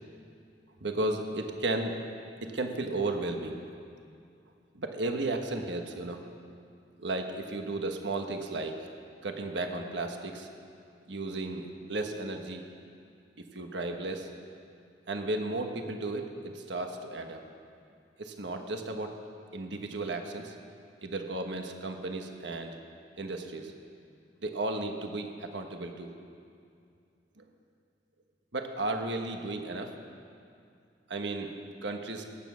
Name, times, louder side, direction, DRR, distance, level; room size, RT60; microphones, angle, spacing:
voice 1, 0.8-2.0 2.4-3.8 4.7-6.2 7.0-8.9 9.2-10.5 11.1-12.6 13.4-14.3 15.1-17.4 18.2-19.2 19.5-20.5 21.0-22.8 23.2-23.7 24.4-26.1 27.4-27.5 28.5-29.9 31.1-31.5 31.8-32.2, right 2 dB, 75° right, 4 dB, 1.3 m, -34 dB
23.0 x 9.6 x 6.3 m, 2.4 s
head